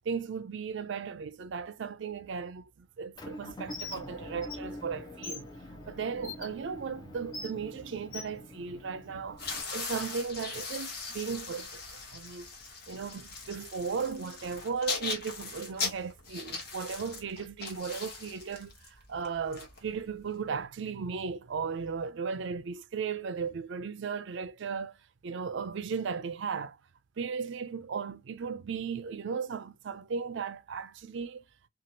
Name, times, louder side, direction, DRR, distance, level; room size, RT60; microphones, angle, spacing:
voice 1, 0.1-5.5 5.9-9.4 9.7-12.5 12.9-25.0 25.2-26.8 27.2-31.4, right 5 dB, 60° right, 0.4 m, -36 dB
Motor vehicle (road) / Engine, 3.1-9.6, left 1 dB, 20° left, 0.5 m, -46 dB
Bird, 3.7-4.0 4.4-4.6 5.2-5.4 6.2-6.5 7.3-7.5 8.1-8.3, left 3 dB, 80° left, 1.2 m, -40 dB
sound 1, 9.3-20.3, left 4 dB, 50° left, 1.0 m, -39 dB
2.9 x 2.4 x 2.6 m
head